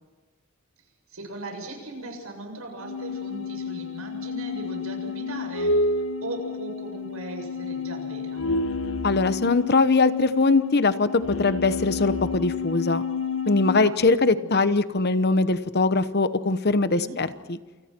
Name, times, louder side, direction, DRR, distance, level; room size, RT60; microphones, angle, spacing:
voice 1, 1.1-8.5 13.8-13.9 14.2-14.5 16.8-17.2, right 2 dB, 75° right, 3 dB, 7.5 m, -38 dB
sound 1, 2.8-14.0, left 3 dB, 65° left, 1.5 m, -30 dB
voice 2, 9.0-13.0 13.5-17.6, left 3 dB, 50° left, 12 dB, 1.1 m, -22 dB
29.5 x 28.5 x 4.6 m, 1.3 s
head